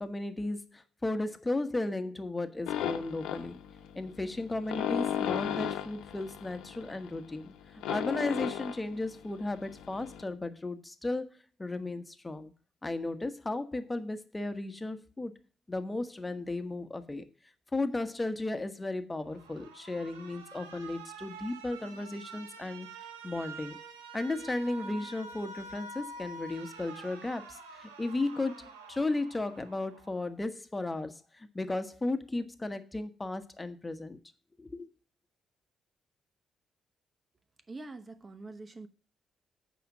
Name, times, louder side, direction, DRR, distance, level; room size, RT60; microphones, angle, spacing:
voice 1, 0.0-3.6 3.9-7.5 7.9-11.3 11.6-12.5 12.8-15.3 15.7-17.2 17.7-22.9 23.2-23.8 24.1-34.2 34.6-34.9, left 2 dB, 20° left, 1.3 m, -35 dB
sound 1, 2.7-10.2, left 10 dB, 75° left, 1.0 m, -36 dB
Alarm, 19.3-30.3, right 3 dB, 90° right, 0.9 m, -47 dB
voice 2, 37.7-38.9, right 3 dB, 35° right, 0.9 m, -44 dB
8.4 x 5.1 x 7.1 m
hypercardioid pair, 45°, 0 cm